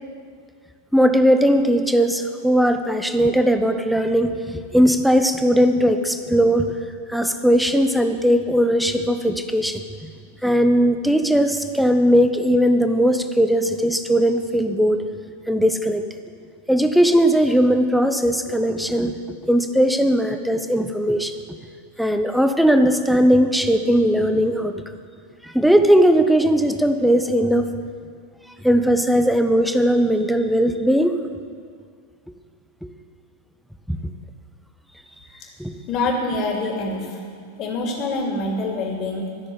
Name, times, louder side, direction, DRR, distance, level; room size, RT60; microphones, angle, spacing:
voice 1, 0.9-6.7 7.1-10.1 10.4-15.0 15.5-16.0 16.7-19.1 19.4-21.3 22.0-24.8 25.4-27.7 28.6-31.2 32.8-32.9 33.9-34.0 35.6-35.7, equal, ahead, 7 dB, 0.8 m, -18 dB
voice 2, 35.9-37.2 37.6-39.3, left 2 dB, 35° left, 0 dB, 2.6 m, -25 dB
14.0 x 6.6 x 8.7 m, 2.1 s
figure-of-eight pair, 90°, 0 cm